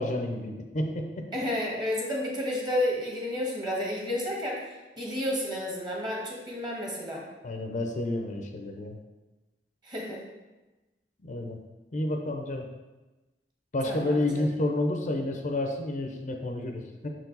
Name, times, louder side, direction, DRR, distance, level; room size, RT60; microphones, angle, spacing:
voice 1, 0.0-1.2 7.4-8.9 11.2-11.6 11.9-12.6 13.7-17.1, left 1 dB, 45° left, 3 dB, 0.6 m, -30 dB
voice 2, 1.3-4.6 5.0-7.2 9.8-10.2 13.8-14.5, left 1 dB, 25° right, -3 dB, 1.5 m, -31 dB
6.3 x 4.6 x 3.9 m, 1.1 s
head